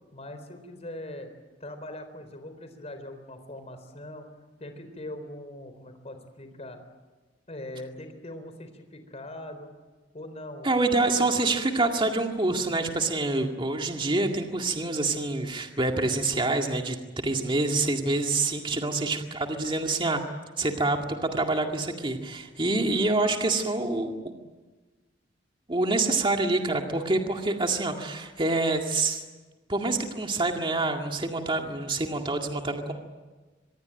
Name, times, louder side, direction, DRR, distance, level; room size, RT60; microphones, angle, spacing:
voice 1, 0.1-1.3 1.6-4.3 4.6-6.8 7.5-9.7 10.1-10.7 11.2-11.3 18.7-19.0 26.1-26.2, left 1 dB, 35° left, 8 dB, 4.0 m, -41 dB
voice 2, 10.6-17.0 17.2-20.2 20.6-24.2 25.7-29.2 29.7-32.9, right 2 dB, 30° right, 3 dB, 2.1 m, -26 dB
25.5 x 21.0 x 9.1 m, 1.3 s
head